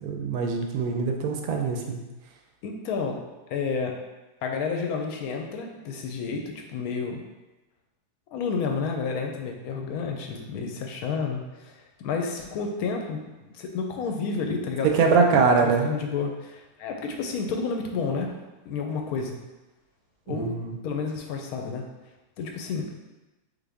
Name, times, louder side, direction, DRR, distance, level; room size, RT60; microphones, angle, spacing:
voice 1, 0.0-2.0 14.8-15.9 20.3-20.7, right 5 dB, 70° right, 3 dB, 1.0 m, -23 dB
voice 2, 2.6-3.2 3.5-3.9 4.4-7.2 8.3-18.3 18.7-19.4 20.3-20.6 20.8-21.8 22.4-22.9, left 5 dB, 70° left, 3 dB, 1.0 m, -30 dB
3.9 x 3.5 x 3.5 m, 1.1 s
omnidirectional pair, 1.7 m